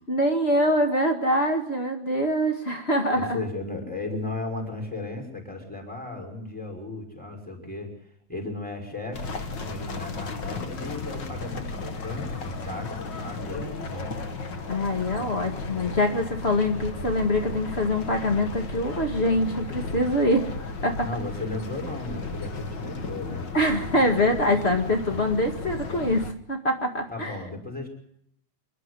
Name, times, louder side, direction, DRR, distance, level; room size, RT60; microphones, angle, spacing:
voice 1, 0.1-3.4 14.7-20.5 20.8-21.1 23.5-27.4, left 1 dB, 55° left, 4 dB, 0.6 m, -24 dB
voice 2, 3.1-7.9 8.3-14.1 21.0-23.4 27.1-27.9, left 2 dB, ahead, 3 dB, 5.3 m, -35 dB
sound 1, 9.1-26.3, left 3 dB, 75° left, 1.0 m, -35 dB
27.0 x 11.5 x 9.7 m, 0.71 s
omnidirectional pair, 4.5 m